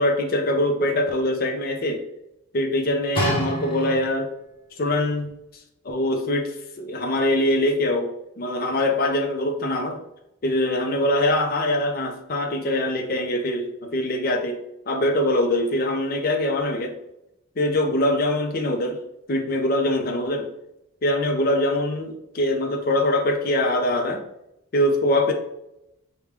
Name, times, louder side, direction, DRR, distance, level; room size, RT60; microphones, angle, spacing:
voice 1, 0.0-2.0 2.5-4.3 4.8-5.3 5.8-6.5 6.8-8.1 8.4-10.0 10.4-14.6 14.9-16.9 17.6-19.0 19.3-20.5 21.0-24.2 24.7-25.3, left 1 dB, 45° left, 3 dB, 0.5 m, -23 dB
sound 1, 3.1-4.4 5.2-5.3, equal, 25° left, 0.9 m, -27 dB
4.9 x 2.2 x 3.4 m, 0.84 s
head